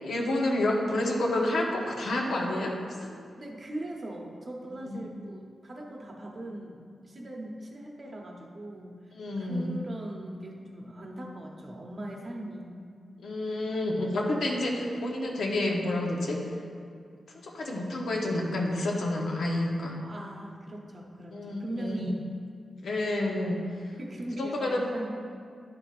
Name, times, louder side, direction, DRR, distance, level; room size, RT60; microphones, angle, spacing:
voice 1, 0.0-2.7 3.0-3.1 4.7-5.0 9.1-9.7 13.2-16.4 17.4-20.0 21.3-22.1 22.8-23.6 24.4-24.9, left 1 dB, 80° left, -1 dB, 1.0 m, -29 dB
voice 2, 3.4-12.7 20.0-22.2 24.0-25.1, right 1 dB, 35° right, 0 dB, 0.8 m, -40 dB
10.5 x 5.9 x 2.5 m, 2.2 s
wide cardioid pair, 160°, 0 cm